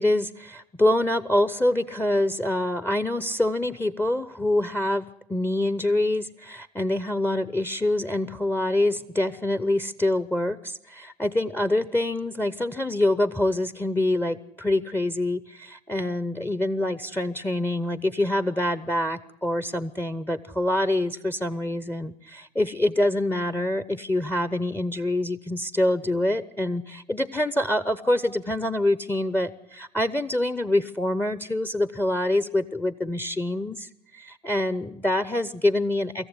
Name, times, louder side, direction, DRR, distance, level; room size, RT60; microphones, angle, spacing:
voice 1, 0.0-5.0 5.3-36.3, left 1 dB, 10° left, 15 dB, 0.9 m, -25 dB
25.0 x 14.5 x 9.8 m, 0.80 s
hypercardioid pair, 60°, 18 cm